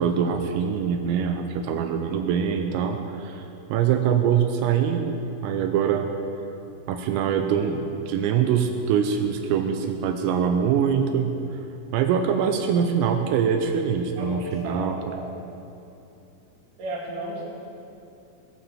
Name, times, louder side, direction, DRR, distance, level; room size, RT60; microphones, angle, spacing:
voice 1, 0.0-3.4 3.7-6.1 6.9-11.4 11.9-15.2, right 7 dB, 85° right, 5 dB, 3.4 m, -24 dB
voice 2, 14.2-15.3 16.8-17.5, right 2 dB, 45° right, -4 dB, 3.7 m, -34 dB
17.5 x 9.3 x 7.3 m, 2.7 s
omnidirectional pair, 6.0 m